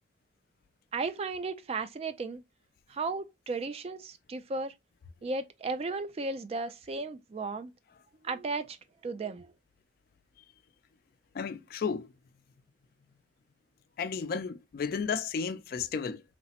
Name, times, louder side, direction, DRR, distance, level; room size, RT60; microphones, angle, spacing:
voice 1, 0.9-2.4 2.9-4.7 5.2-7.7 8.2-8.8 9.0-9.5, right 3 dB, 35° right, 0.3 m, -35 dB
voice 2, 11.3-12.1 14.0-16.2, left 6 dB, 55° left, 0.3 m, -33 dB
3.2 x 2.0 x 2.7 m
head